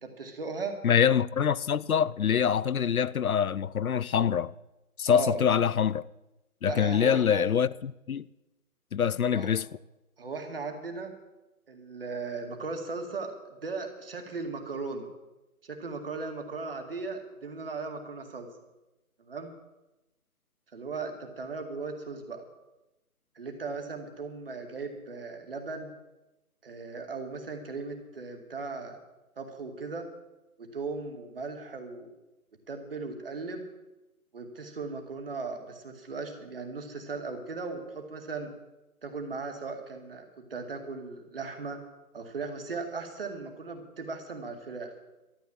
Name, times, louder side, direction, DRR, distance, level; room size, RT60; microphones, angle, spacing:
voice 1, 0.0-0.8 5.1-5.4 6.7-7.4 9.3-9.5 10.2-11.1 11.7-15.1 15.6-18.5 19.2-19.5 20.7-22.4 23.4-25.9 26.6-29.0 29.4-30.1 30.6-32.1 32.7-33.6 34.3-38.5 39.0-41.8 42.1-44.9, right 4 dB, 40° right, 2.1 m, -37 dB
voice 2, 0.8-4.5 5.0-6.1 6.6-8.3 8.9-9.7, left 8 dB, 70° left, 0.6 m, -25 dB
13.0 x 11.5 x 7.2 m
figure-of-eight pair, 165°, 44 cm